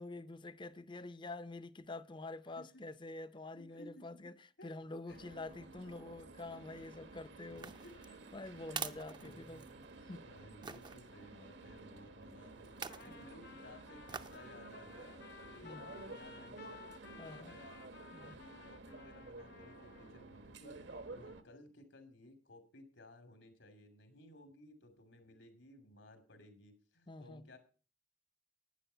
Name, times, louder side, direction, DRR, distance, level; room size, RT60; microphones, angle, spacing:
voice 1, 0.0-4.3 4.6-7.8 8.3-9.6 10.1-10.2 15.6-15.9 17.2-17.5 18.1-18.4 27.1-27.4, left 2 dB, 25° left, 0.6 m, -47 dB
voice 2, 3.5-4.3 4.6-4.7 5.1-5.2 7.7-8.0 8.7-16.9 17.1-17.8 18.2-20.8 21.1-27.6, left 1 dB, 80° left, 2.7 m, -58 dB
sound 1, 5.1-21.4, right 2 dB, 70° right, 1.2 m, -53 dB
sound 2, 7.5-10.0 10.6-11.0 12.7-13.1 14.1-14.5 14.9-15.0, right 6 dB, 25° right, 0.5 m, -45 dB
Trumpet, 12.9-20.2, left 6 dB, 60° left, 0.9 m, -57 dB
11.5 x 9.5 x 5.6 m
head